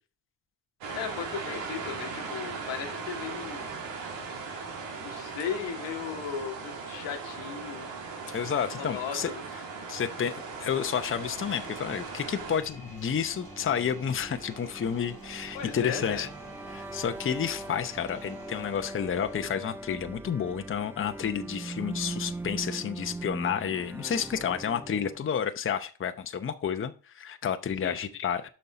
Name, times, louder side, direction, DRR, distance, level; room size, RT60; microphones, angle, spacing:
sound 1, 0.8-12.6, right 4 dB, 85° right, 1.9 m, -38 dB
voice 1, 0.9-3.7 5.0-7.9 8.8-9.4 15.5-16.3 27.8-28.0, left 8 dB, 85° left, 5 dB, 1.5 m, -36 dB
voice 2, 8.3-9.3 9.9-16.3 16.7-28.5, left 8 dB, 30° left, 8 dB, 0.8 m, -30 dB
sound 2, 10.2-20.0, right 3 dB, 55° right, 3.9 m, -49 dB
sound 3, 12.4-25.4, right 2 dB, 5° right, 0.4 m, -41 dB
6.7 x 5.5 x 4.8 m, 0.37 s
cardioid pair, 85°, 43 cm